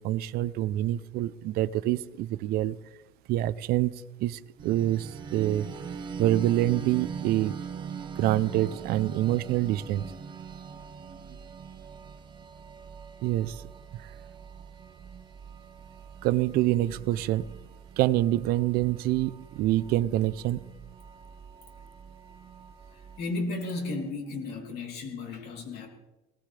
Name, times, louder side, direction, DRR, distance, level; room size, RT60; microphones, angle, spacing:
voice 1, 0.0-2.8 3.3-5.7 6.2-7.5 8.2-10.0 13.2-13.6 13.9-14.0 16.2-17.5 18.0-20.6, right 14 dB, 55° right, 15 dB, 0.5 m, -26 dB
sound 1, 4.6-23.2, right 6 dB, 25° right, 1.1 m, -42 dB
voice 2, 22.9-25.9, left 3 dB, 55° left, 1 dB, 3.3 m, -34 dB
19.5 x 18.0 x 3.3 m, 1.1 s
cardioid pair, 170°, 19 cm